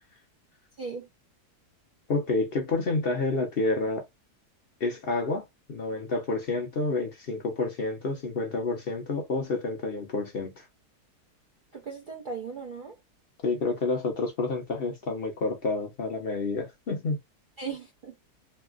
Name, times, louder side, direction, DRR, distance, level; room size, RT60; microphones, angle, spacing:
voice 1, 0.8-1.1 11.7-13.0 17.6-18.1, right 5 dB, 80° right, 0.4 m, -37 dB
voice 2, 2.1-4.0 4.8-10.6 13.4-17.2, left 3 dB, 50° left, 0.8 m, -29 dB
3.3 x 2.4 x 2.2 m
omnidirectional pair, 1.7 m